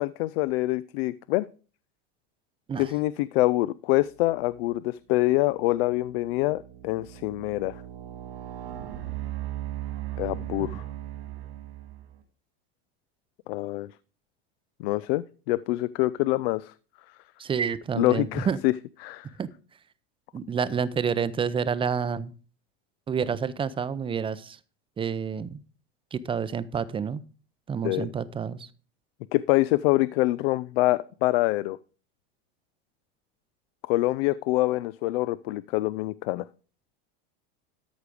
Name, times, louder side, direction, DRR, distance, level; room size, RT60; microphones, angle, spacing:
voice 1, 0.0-1.5 2.8-7.8 10.2-10.8 13.5-13.9 14.8-16.7 18.0-18.7 19.0-19.3 27.8-28.1 29.3-31.8 33.8-36.5, left 18 dB, 70° left, 0.5 m, -25 dB
sound 1, 4.4-4.8 5.4-12.2, right 13 dB, 75° right, 2.5 m, -38 dB
voice 2, 17.4-18.6 19.4-19.5 20.3-22.3 23.1-24.6 25.0-25.6 26.1-27.2 27.7-28.7, right 6 dB, 15° right, 0.5 m, -29 dB
13.0 x 5.0 x 5.0 m
supercardioid pair, 130°, 31 cm